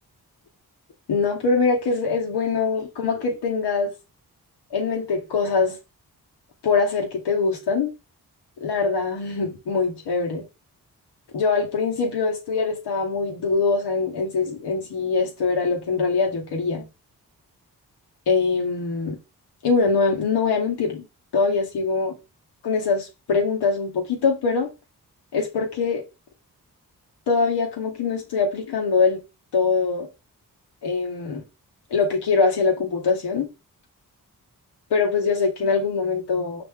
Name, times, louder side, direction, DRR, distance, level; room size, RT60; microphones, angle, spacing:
voice 1, 1.1-3.9 4.7-5.8 6.6-7.9 8.6-10.4 11.3-16.9 18.3-19.2 19.6-21.0 21.3-22.1 22.6-24.7 25.3-26.0 27.3-29.2 29.5-30.1 30.8-31.4 31.9-33.5 34.9-36.7, left 4 dB, 85° left, 1.0 m, -23 dB
5.0 x 2.5 x 3.5 m
cardioid pair, 45°, 40 cm